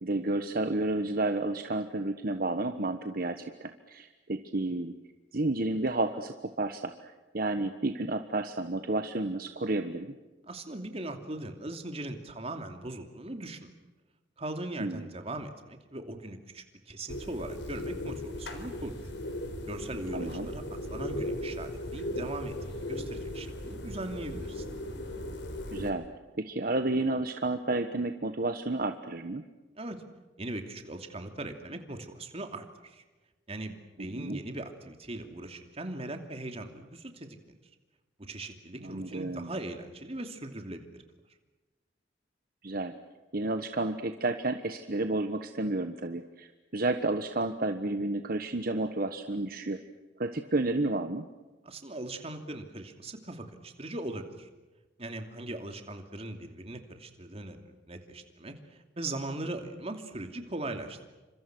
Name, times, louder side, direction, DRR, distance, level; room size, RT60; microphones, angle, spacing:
voice 1, 0.0-4.9 5.3-10.1 14.8-15.0 20.1-20.5 25.7-26.1 26.4-29.4 34.0-34.4 38.8-39.5 42.6-42.9 43.3-49.8 50.2-51.3, right 2 dB, 50° right, 8 dB, 1.3 m, -31 dB
voice 2, 10.5-13.7 14.4-19.0 19.7-24.6 29.7-30.0 30.4-33.0 33.5-37.4 38.2-40.9 51.6-54.5 55.0-57.6 57.9-61.1, right 2 dB, 35° right, 6 dB, 2.9 m, -40 dB
sound 1, 17.1-25.9, left 1 dB, 75° left, 4.2 m, -37 dB
29.5 x 26.5 x 6.3 m, 1.2 s
head